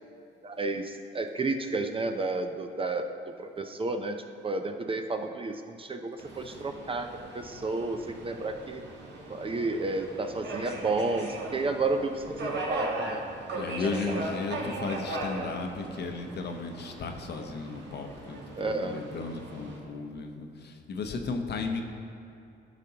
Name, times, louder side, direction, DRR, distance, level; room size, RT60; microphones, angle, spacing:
voice 1, 0.4-3.1 3.4-7.1 7.3-8.8 9.3-13.2 13.6-13.7 18.6-19.0, right 3 dB, 25° right, 6 dB, 0.5 m, -31 dB
Subway metro underground, 6.2-19.8, right 1 dB, 65° right, 1.4 m, -38 dB
voice 2, 13.5-21.8, left 4 dB, 55° left, 5 dB, 0.8 m, -35 dB
12.0 x 5.1 x 2.9 m, 2.7 s
cardioid pair, 90°, 20 cm